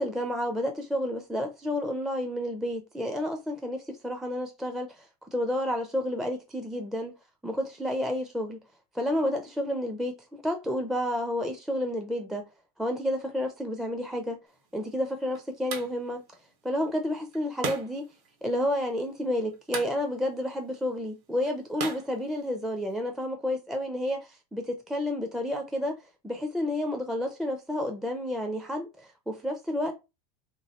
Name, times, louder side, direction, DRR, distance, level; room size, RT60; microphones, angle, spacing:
voice 1, 0.0-7.1 7.4-8.6 8.9-12.4 12.8-14.4 14.7-16.2 16.6-18.0 18.4-24.2 24.5-26.0 26.2-29.9, left 1 dB, ahead, 0.4 m, -30 dB
sound 1, 14.5-23.0, right 5 dB, 65° right, 1.5 m, -41 dB
3.0 x 2.6 x 4.1 m
supercardioid pair, 135°, 21 cm